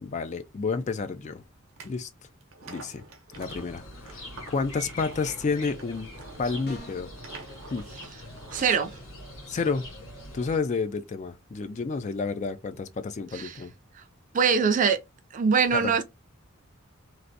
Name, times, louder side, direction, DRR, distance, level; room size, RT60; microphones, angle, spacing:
voice 1, 0.0-1.4 1.8-2.1 2.7-3.0 3.4-6.1 6.4-7.1 7.7-7.9 9.5-9.9 10.3-13.7 15.7-15.9, left 4 dB, 35° left, 0.3 m, -30 dB
sound 1, 1.7-1.9 2.4-8.7, right 4 dB, 70° right, 0.8 m, -48 dB
sound 2, 3.3-10.6, left 1 dB, 75° left, 1.8 m, -43 dB
sound 3, 6.6-7.2, left 1 dB, 50° left, 0.9 m, -44 dB
voice 2, 8.5-8.9 13.3-13.6 14.3-15.0 15.3-16.0, right 6 dB, 35° right, 0.4 m, -23 dB
3.2 x 2.5 x 2.6 m
head